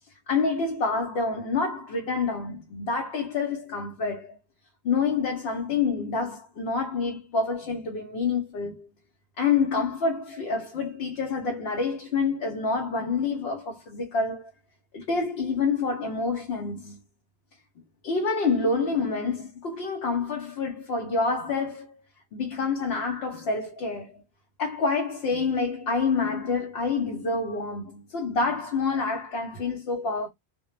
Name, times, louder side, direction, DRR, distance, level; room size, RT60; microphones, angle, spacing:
voice 1, 0.3-4.4 4.8-8.9 9.4-14.5 14.9-17.1 18.0-22.0 22.3-24.2 24.6-30.3, left 4 dB, 80° left, 0.8 m, -27 dB
2.1 x 2.1 x 2.9 m
omnidirectional pair, 1.0 m